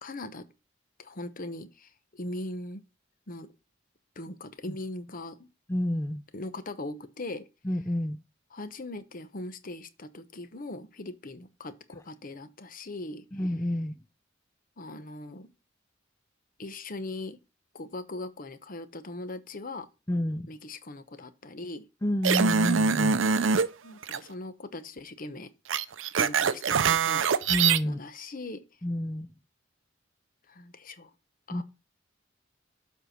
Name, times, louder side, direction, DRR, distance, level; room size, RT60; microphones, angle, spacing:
voice 1, 0.0-0.5 1.0-2.8 3.3-3.5 4.2-5.5 6.3-7.4 8.5-13.2 14.8-15.5 16.6-17.4 17.7-19.9 20.5-21.8 23.8-25.5 26.2-27.3 27.8-28.6 30.5-31.1 31.5-31.6, left 2 dB, 45° left, 0.9 m, -40 dB
voice 2, 5.7-6.2 7.6-8.2 13.3-13.9 20.1-20.5 22.0-23.2 27.5-28.0 28.8-29.3 31.5-31.6, left 1 dB, 15° left, 0.5 m, -29 dB
sound 1, 22.2-23.7 24.0-24.2 25.7-27.8, right 6 dB, 75° right, 0.6 m, -24 dB
7.5 x 4.6 x 6.5 m
head